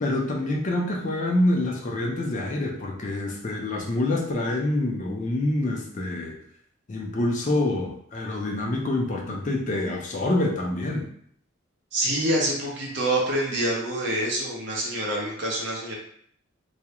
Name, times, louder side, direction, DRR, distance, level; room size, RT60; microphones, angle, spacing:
voice 1, 0.0-6.4 6.9-11.1, left 1 dB, 35° left, 0 dB, 0.4 m, -26 dB
voice 2, 11.9-15.9, right 1 dB, 55° right, -3 dB, 0.7 m, -26 dB
2.3 x 2.0 x 2.8 m, 0.64 s
head